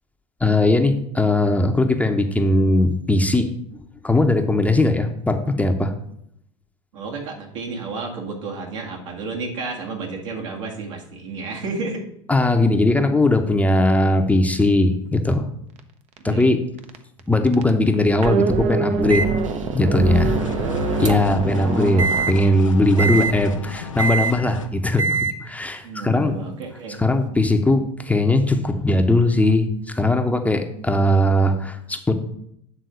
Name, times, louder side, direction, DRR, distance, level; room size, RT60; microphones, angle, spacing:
voice 1, 0.4-3.5 4.0-5.9 12.3-15.5 16.2-16.6 17.3-19.3 19.7-20.4 21.0-26.4 27.0-32.1, left 1 dB, 10° left, 5 dB, 0.9 m, -19 dB
voice 2, 6.9-12.1 16.2-16.5 20.1-20.7 21.0-21.6 25.8-27.0, right 3 dB, 75° right, -1 dB, 1.9 m, -32 dB
sound 1, 15.8-15.9 16.2-16.4 16.8-17.2 17.5-22.3, right 4 dB, 45° right, 0.8 m, -24 dB
Microwave oven, 19.1-21.4 22.0-22.3 23.0-23.3 24.0-24.3 25.0-25.3, right 4 dB, 90° right, 0.8 m, -25 dB
sound 2, 20.3-24.7, left 5 dB, 90° left, 0.6 m, -35 dB
8.2 x 3.8 x 6.4 m, 0.72 s
hypercardioid pair, 75°, 16 cm